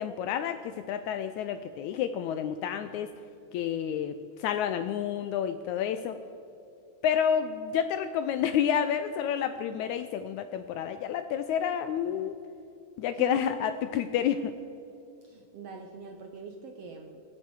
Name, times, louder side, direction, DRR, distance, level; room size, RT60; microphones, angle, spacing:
voice 1, 0.0-3.1 3.5-6.2 7.0-12.4 13.0-14.5, left 9 dB, 80° left, 10 dB, 1.7 m, -29 dB
voice 2, 13.1-13.5 15.2-17.2, right 4 dB, 70° right, 3 dB, 1.5 m, -43 dB
23.5 x 8.6 x 4.7 m, 2.8 s
omnidirectional pair, 3.8 m